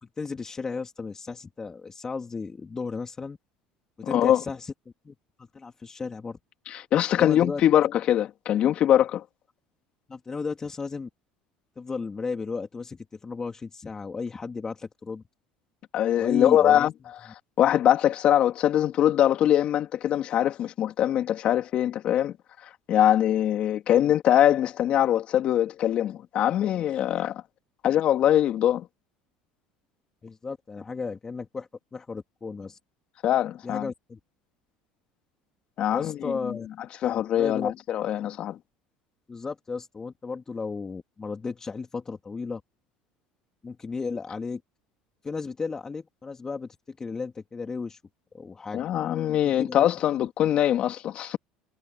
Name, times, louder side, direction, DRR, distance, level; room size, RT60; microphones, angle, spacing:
voice 1, 0.0-3.4 4.0-4.7 5.1-6.4 7.2-7.8 10.1-11.1 11.8-15.2 16.2-16.9 23.9-24.1 27.1-27.2 30.2-32.8 33.6-34.2 35.9-36.7 37.1-37.7 39.3-42.6 43.6-44.6 45.2-48.0 48.3-48.8 49.6-49.9 50.1-50.3, left 4 dB, 25° left, 3.3 m, -34 dB
voice 2, 4.1-4.4 6.7-9.2 15.9-16.9 17.6-22.3 22.9-27.4 27.8-28.9 33.2-33.9 35.8-36.6 37.0-38.6 48.7-51.4, left 11 dB, 50° left, 2.4 m, -22 dB
supercardioid pair, 95°, 2 cm